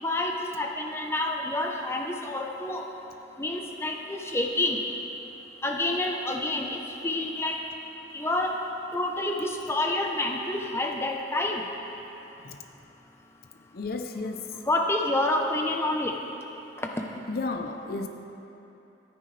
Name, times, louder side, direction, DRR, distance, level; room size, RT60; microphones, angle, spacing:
voice 1, 0.0-2.8 3.4-4.8 5.6-6.8 7.0-7.6 8.1-8.6 8.9-11.6 14.7-16.1 16.9-17.0, left 2 dB, 15° left, 2 dB, 0.8 m, -28 dB
voice 2, 13.7-14.6 17.3-18.1, left 3 dB, 55° left, 5 dB, 0.7 m, -33 dB
25.0 x 9.6 x 3.4 m, 2.9 s
head